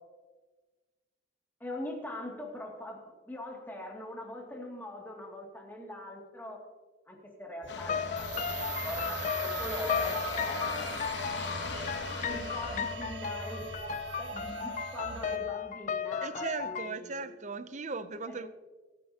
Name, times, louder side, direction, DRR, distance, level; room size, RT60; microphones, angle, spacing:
voice 1, 1.6-6.6 7.1-11.0 12.2-17.3 18.3-18.5, left 1 dB, 10° left, 2.4 m, -42 dB
sound 1, 7.6-15.4, right 3 dB, 80° right, 1.4 m, -39 dB
sound 2, 7.7-13.0, left 5 dB, 65° left, 1.0 m, -39 dB
sound 3, 7.8-16.9, left 7 dB, 40° left, 0.4 m, -36 dB
voice 2, 16.2-18.5, right 4 dB, 40° right, 0.6 m, -38 dB
24.0 x 9.9 x 2.9 m
head